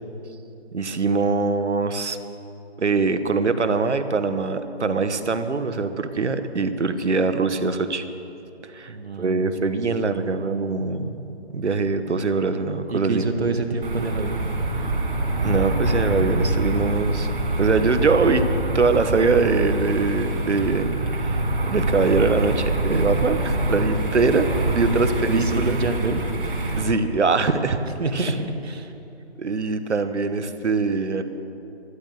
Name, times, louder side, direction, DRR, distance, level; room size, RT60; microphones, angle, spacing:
voice 1, 0.7-2.2 2.8-8.0 8.6-11.3 11.5-13.3 15.4-17.3 17.6-18.4 18.7-21.4 21.7-25.8 26.7-27.8 28.1-28.3 29.4-31.2, right 4 dB, 85° right, 10 dB, 1.3 m, -23 dB
voice 2, 8.9-9.7 12.9-14.4 25.1-26.3 28.0-28.9, right 3 dB, 65° right, 6 dB, 1.6 m, -27 dB
sound 1, 13.8-26.8, right 2 dB, 50° right, 3.4 m, -25 dB
13.0 x 10.5 x 8.1 m, 2.8 s
hypercardioid pair, 175°, 34 cm